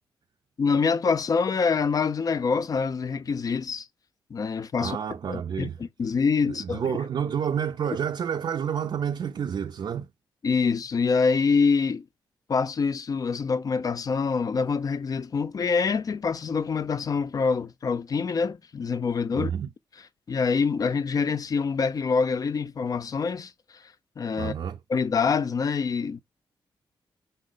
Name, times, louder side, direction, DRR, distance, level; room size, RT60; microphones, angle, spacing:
voice 1, 0.6-3.9 4.3-5.0 5.3-6.8 10.4-12.1 12.5-19.5 20.3-23.5 24.2-24.5 24.9-26.2, left 5 dB, 45° left, 0.4 m, -25 dB
voice 2, 4.8-5.8 6.5-10.1 19.3-19.7 24.4-24.8, right 8 dB, 55° right, 0.4 m, -29 dB
5.4 x 2.0 x 3.8 m
cardioid pair, 70°, 9 cm